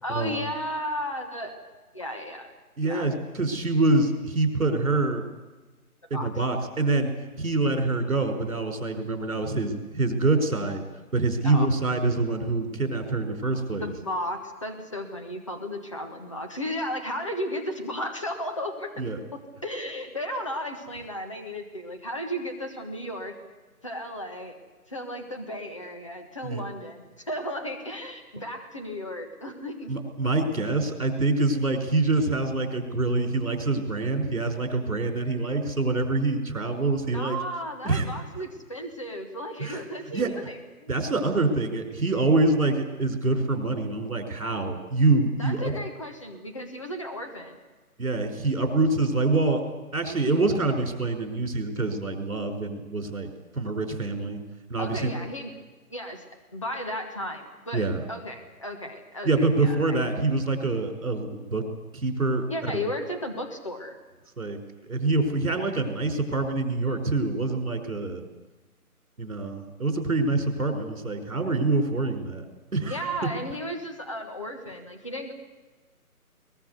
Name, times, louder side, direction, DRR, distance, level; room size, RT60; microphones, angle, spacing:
voice 1, 0.0-1.5 1.9-2.5 2.8-3.1 6.1-6.3 11.4-11.7 13.7-19.0 19.3-23.3 23.8-24.6 24.9-29.9 37.1-40.9 45.4-47.6 54.8-55.5 55.9-56.3 56.5-60.0 62.5-64.0 72.8-75.3, equal, 20° left, 3 dB, 1.5 m, -34 dB
voice 2, 2.8-5.3 6.1-7.1 7.4-10.8 11.1-13.9 19.0-19.2 26.4-26.6 29.9-37.4 37.8-38.1 39.6-39.8 40.1-40.3 40.9-45.7 48.0-49.6 49.9-54.4 54.7-55.2 57.7-58.0 59.2-61.7 61.9-62.8 64.4-64.6 64.8-68.2 69.2-72.4 72.7-73.0, right 3 dB, 60° right, 5 dB, 5.1 m, -25 dB
21.5 x 20.5 x 8.2 m, 1.2 s
hypercardioid pair, 180°, 45 cm